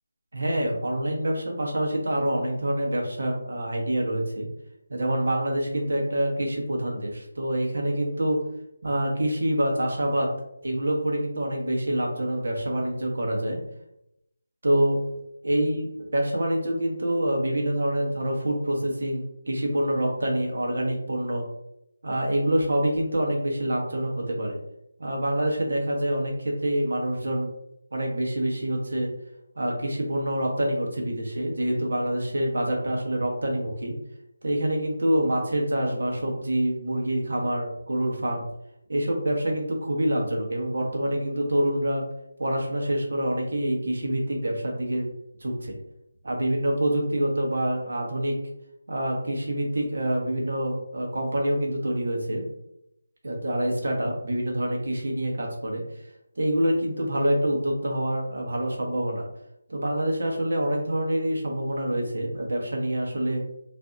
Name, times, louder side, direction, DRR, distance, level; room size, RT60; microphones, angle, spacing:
voice 1, 0.3-4.5 4.9-8.4 8.8-10.3 10.6-13.6 14.6-15.0 15.4-21.4 22.0-24.6 25.0-27.5 27.9-29.1 29.6-33.9 34.4-38.4 38.9-42.0 42.4-45.1 45.4-45.7 46.2-48.4 48.9-52.4 53.2-55.8 56.4-59.3 59.7-63.4, right 1 dB, 65° right, 0 dB, 0.9 m, -26 dB
2.6 x 2.5 x 2.3 m, 0.79 s
figure-of-eight pair, 170°, 0 cm